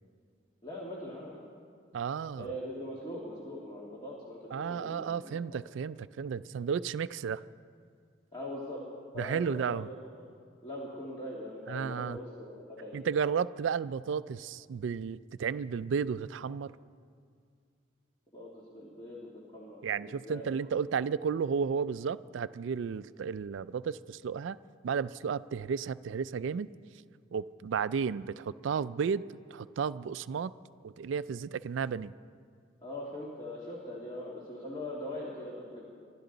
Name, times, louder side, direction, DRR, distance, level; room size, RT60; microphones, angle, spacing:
voice 1, 0.6-1.4 2.4-5.6 8.3-8.8 9.1-10.3 10.6-13.0 18.3-20.7 32.8-35.8, left 1 dB, 25° left, -5 dB, 1.9 m, -42 dB
voice 2, 1.9-2.5 4.5-7.4 9.2-9.9 11.7-12.2 12.9-16.8 19.8-24.6 24.8-26.7 27.3-29.2 29.5-30.5 30.8-32.1, right 6 dB, 70° right, 16 dB, 0.3 m, -33 dB
24.0 x 12.5 x 3.9 m, 2.2 s
head